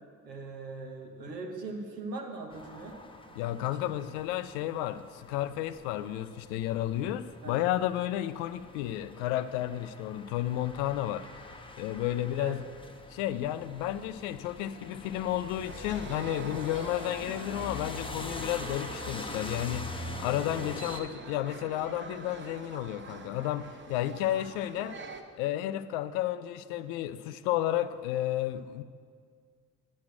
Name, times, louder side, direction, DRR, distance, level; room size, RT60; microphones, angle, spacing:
voice 1, 0.2-3.0 3.6-3.8 7.4-7.6 12.4-12.6, right 3 dB, 85° right, 1.0 m, -40 dB
sound 1, 2.5-21.0, left 3 dB, 10° left, 0.7 m, -44 dB
voice 2, 3.4-11.3 11.8-12.6 13.1-25.0 25.4-28.8, left 13 dB, 60° left, 0.5 m, -32 dB
sound 2, 15.6-25.2, right 4 dB, 25° right, 0.8 m, -45 dB
10.5 x 6.3 x 6.3 m
figure-of-eight pair, 45°, 48 cm